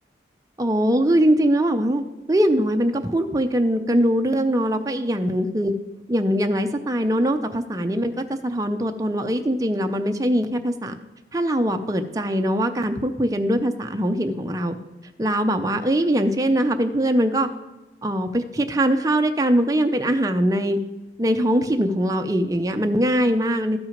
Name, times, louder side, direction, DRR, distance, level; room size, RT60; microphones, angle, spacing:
voice 1, 0.6-2.0 2.3-5.7 6.1-11.0 11.3-14.8 15.2-17.5 18.0-20.8 21.2-23.8, equal, 20° right, 6 dB, 0.5 m, -22 dB
12.5 x 6.0 x 5.1 m, 1.1 s
head